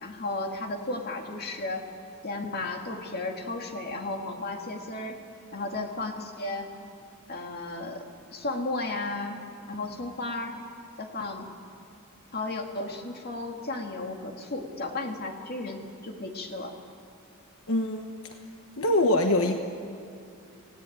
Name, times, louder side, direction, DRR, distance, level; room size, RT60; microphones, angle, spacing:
voice 1, 0.0-1.8 2.2-5.2 5.5-6.7 7.3-8.0 8.3-9.4 9.7-10.6 11.0-11.5 12.3-16.7, left 2 dB, 45° left, 2 dB, 2.4 m, -34 dB
voice 2, 17.7-18.0 18.8-19.6, left 1 dB, 75° left, 5 dB, 1.2 m, -23 dB
28.5 x 17.5 x 8.8 m, 2.5 s
head